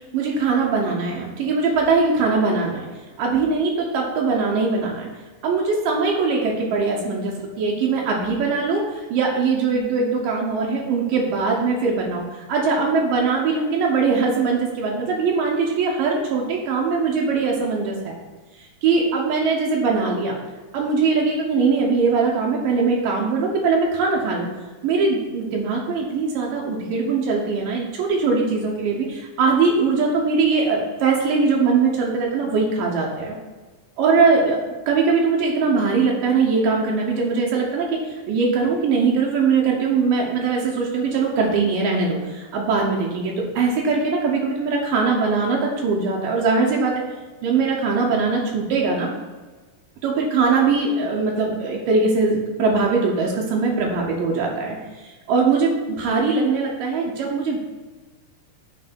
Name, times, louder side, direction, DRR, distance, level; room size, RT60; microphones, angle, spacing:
voice 1, 0.1-2.9 3.2-5.1 5.4-18.1 18.6-20.4 20.7-24.5 24.8-33.4 34.0-34.6 34.9-47.0 47.4-49.1 50.0-57.7, right 4 dB, 75° right, -1 dB, 2.5 m, -21 dB
9.3 x 3.3 x 5.2 m, 1.3 s
omnidirectional pair, 4.1 m